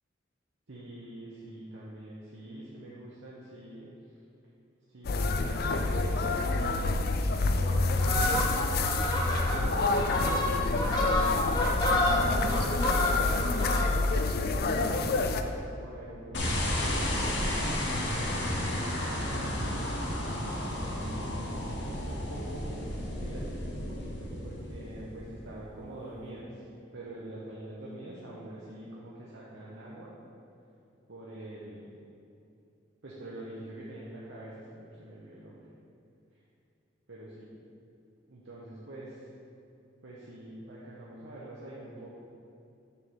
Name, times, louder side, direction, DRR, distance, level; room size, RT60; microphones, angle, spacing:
voice 1, 0.7-3.9 4.9-6.6 7.4-11.4 12.0-13.5 14.4-17.5 18.2-21.3 22.1-23.6 23.9-26.6 26.9-30.1 31.1-31.9 33.0-35.6 37.1-37.5 38.3-39.1 40.0-42.2, right 1 dB, 75° right, -7 dB, 0.9 m, -44 dB
sound 1, 5.0-15.4, left 3 dB, 50° left, 0.4 m, -28 dB
Fowl, 7.9-14.2 14.6-14.8, left 1 dB, 20° left, 0.9 m, -29 dB
sound 2, 16.3-25.7, left 1 dB, 65° left, 1.0 m, -32 dB
7.0 x 3.6 x 6.2 m, 2.7 s
head